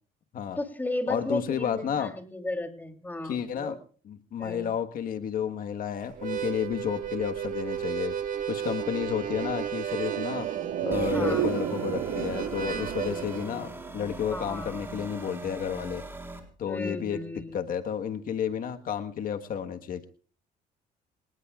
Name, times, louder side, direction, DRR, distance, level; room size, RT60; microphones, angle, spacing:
voice 1, 0.6-3.7 4.4-4.7 11.1-11.5 14.3-14.8 16.6-17.6, left 2 dB, 10° left, 5 dB, 3.1 m, -34 dB
voice 2, 1.1-2.1 3.2-3.8 4.0-8.1 8.5-10.5 10.8-16.0 16.6-17.2 17.5-20.1, left 8 dB, 55° left, 7 dB, 1.5 m, -31 dB
Harmonica, 6.1-13.5, right 9 dB, 50° right, 2.2 m, -34 dB
sound 1, 9.7-14.3 14.5-14.6, right 10 dB, 80° right, 1.8 m, -32 dB
sound 2, 10.9-16.4, right 2 dB, 15° right, 4.2 m, -41 dB
25.0 x 19.5 x 2.4 m, 0.42 s
cardioid pair, 110°, 17 cm